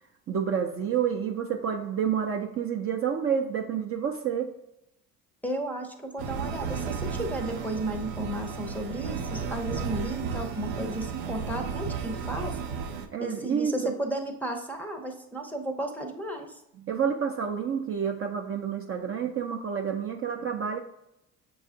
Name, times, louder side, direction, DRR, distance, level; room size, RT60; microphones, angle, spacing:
voice 1, 0.3-4.5 13.1-13.9 16.9-20.8, right 7 dB, 35° right, 3 dB, 0.5 m, -29 dB
voice 2, 5.4-12.6 13.2-16.6, right 1 dB, 5° left, 3 dB, 0.6 m, -33 dB
sound 1, 6.2-13.1, right 5 dB, 80° right, 0.6 m, -33 dB
6.6 x 2.3 x 2.6 m, 0.83 s
hypercardioid pair, 65°, 40 cm